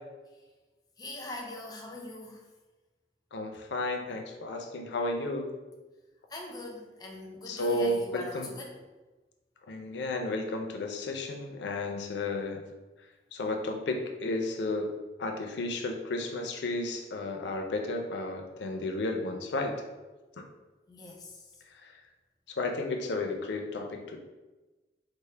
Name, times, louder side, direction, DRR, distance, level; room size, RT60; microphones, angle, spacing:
voice 1, 1.0-2.4 6.3-8.8 20.9-21.2, left 2 dB, 20° left, 0 dB, 0.4 m, -42 dB
voice 2, 3.3-5.5 7.5-8.5 9.7-12.6 13.3-14.9 15.2-19.8 20.4-20.5 21.8-21.9 22.6-24.2, left 2 dB, 80° left, 3 dB, 0.5 m, -33 dB
4.4 x 2.1 x 3.2 m, 1.2 s
head